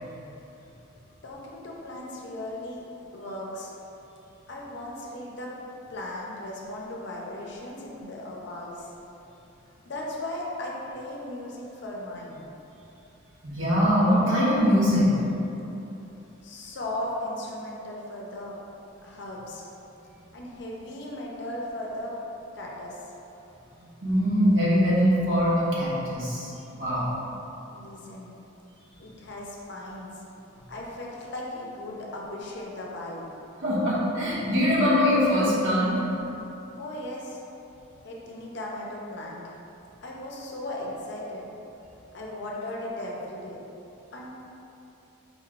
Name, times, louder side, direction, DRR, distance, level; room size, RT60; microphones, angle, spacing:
voice 1, 1.2-2.8 3.1-3.7 4.5-5.5 5.9-8.9 9.8-12.5 16.4-18.6 19.0-19.7 20.3-22.2 22.5-23.1 27.7-28.4 29.0-30.1 30.7-33.2 36.8-37.4 38.0-39.5 40.0-41.5 42.1-43.6 44.1-44.3, left 1 dB, 55° left, -3 dB, 0.6 m, -37 dB
voice 2, 13.4-15.1 24.0-27.1 33.6-35.9, equal, 65° right, -8 dB, 1.1 m, -22 dB
5.0 x 3.1 x 2.5 m, 3.0 s
head